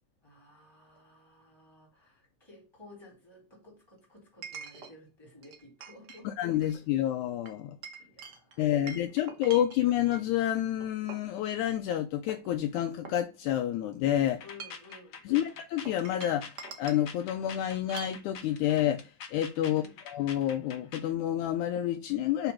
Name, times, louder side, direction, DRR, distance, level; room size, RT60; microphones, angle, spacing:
voice 1, 0.2-6.3 8.0-8.8 14.4-15.6 19.7-20.0, left 2 dB, 10° left, 3.4 m, -54 dB
Chink clink, 1.0-1.1 4.4-4.9 5.4-6.2 6.5-6.8 7.5-10.2 10.8-11.3 11.8-12.0 12.3-13.7 14.4-14.9 15.8-17.0 17.9-18.2, right 4 dB, 65° right, 1.0 m, -45 dB
voice 2, 6.2-7.8 8.6-14.4 15.3-22.5, left 12 dB, 80° left, 1.9 m, -29 dB
sound 1, 14.3-21.1, left 6 dB, 60° left, 1.5 m, -46 dB
5.2 x 4.9 x 5.8 m
omnidirectional pair, 3.7 m